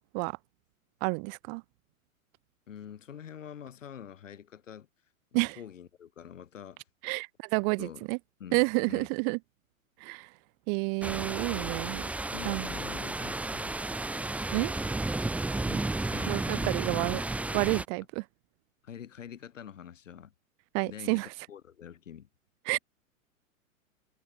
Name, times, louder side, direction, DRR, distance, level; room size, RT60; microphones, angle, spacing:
voice 1, 1.0-1.6 5.3-5.6 7.0-8.2 8.5-9.4 10.0-10.3 10.7-12.0 12.4-12.7 14.5-14.7 16.3-17.2 17.5-18.2 20.7-21.3 22.7-22.8, right 40 dB or more, 30° right, 0.8 m, -29 dB
voice 2, 2.7-4.9 5.3-6.8 7.6-8.1 8.4-9.1 11.5-11.8 12.3-14.0 15.7-16.8 18.8-20.3 20.8-21.2 21.5-22.3, left 9 dB, 60° left, 5.9 m, -46 dB
sound 1, 11.0-17.8, right 2 dB, 5° right, 1.0 m, -33 dB
figure-of-eight pair, 105°, 42 cm